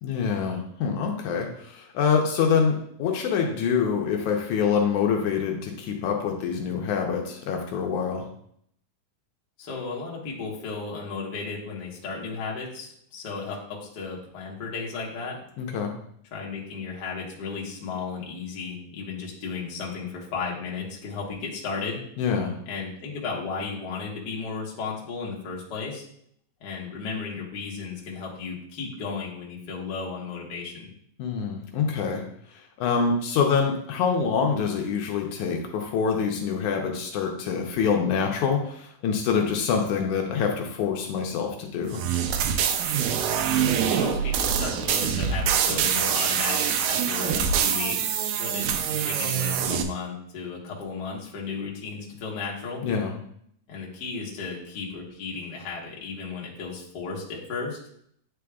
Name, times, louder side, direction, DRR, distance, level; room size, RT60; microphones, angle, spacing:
voice 1, 0.0-8.3 15.6-15.9 22.2-22.6 31.2-32.2 32.8-42.1 52.8-53.1, left 6 dB, 75° left, 2 dB, 2.0 m, -25 dB
voice 2, 9.6-15.4 16.3-22.0 22.6-26.1 26.6-30.9 43.8-52.8 53.7-57.8, left 4 dB, 55° left, -3 dB, 1.1 m, -34 dB
sound 1, 41.9-49.8, right 8 dB, 80° right, 2.2 m, -25 dB
9.1 x 4.9 x 2.3 m, 0.68 s
omnidirectional pair, 3.8 m